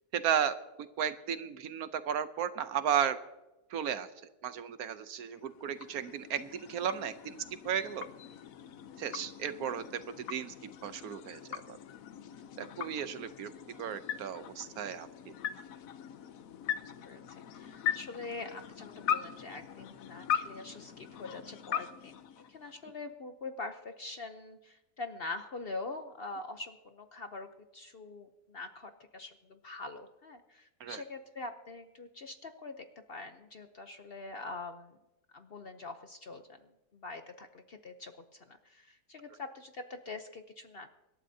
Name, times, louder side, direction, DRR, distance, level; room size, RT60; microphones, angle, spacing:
voice 1, 0.1-3.2 3.7-4.1 4.4-7.4 7.6-8.1 9.0-10.0 10.3-11.8 12.6-13.5 13.8-15.3 30.8-31.0, right 8 dB, 70° right, 11 dB, 1.2 m, -34 dB
sound 1, 5.2-23.0, left 9 dB, 65° left, 1.1 m, -40 dB
voice 2, 16.8-22.2 22.5-35.0 35.3-40.9, left 3 dB, 50° left, 7 dB, 0.8 m, -44 dB
25.0 x 12.0 x 2.7 m, 0.99 s
omnidirectional pair, 1.7 m